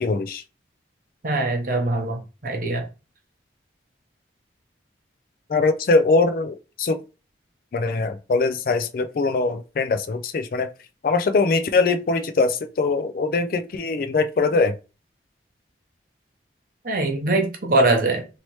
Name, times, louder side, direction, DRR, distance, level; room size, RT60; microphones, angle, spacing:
voice 1, 0.0-0.4 5.5-7.0 7.7-10.7 11.0-14.7, left 3 dB, 50° left, 0.3 m, -22 dB
voice 2, 1.2-2.9 16.8-18.4, right 2 dB, 50° right, 0.8 m, -22 dB
3.1 x 2.8 x 3.0 m
head